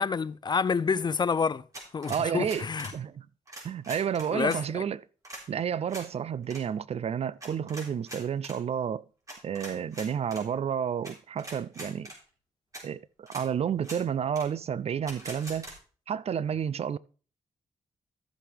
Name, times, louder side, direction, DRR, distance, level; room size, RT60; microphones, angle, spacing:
voice 1, 0.0-1.6 1.9-2.9 4.3-4.8, left 5 dB, 35° left, 0.4 m, -28 dB
sound 1, 1.7-3.0 3.5-4.6 5.2-5.4 5.9-6.1 6.4-6.6 7.4-8.6 9.3-10.4 11.0-11.1 11.4-12.2 12.7-12.8 13.3-13.4 13.8-14.0 14.3-14.5 15.1-15.7, right 1 dB, 25° right, 4.1 m, -42 dB
voice 2, 2.1-2.7 2.9-3.3 3.6-5.0 5.5-9.0 9.4-12.1 12.8-15.7 16.1-17.0, right 8 dB, 50° right, 0.4 m, -31 dB
13.0 x 7.6 x 3.4 m
cardioid pair, 80°, 13 cm